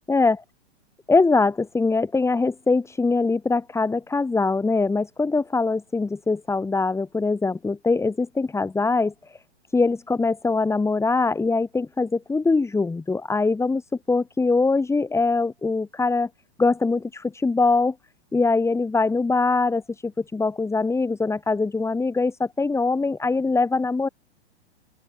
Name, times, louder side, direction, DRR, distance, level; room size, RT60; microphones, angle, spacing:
voice 1, 1.1-9.4 9.7-13.8 14.1-16.3 16.6-18.0 18.3-24.1, left 3 dB, 10° left, 3.7 m, -22 dB
open air
hypercardioid pair, 120°, 33 cm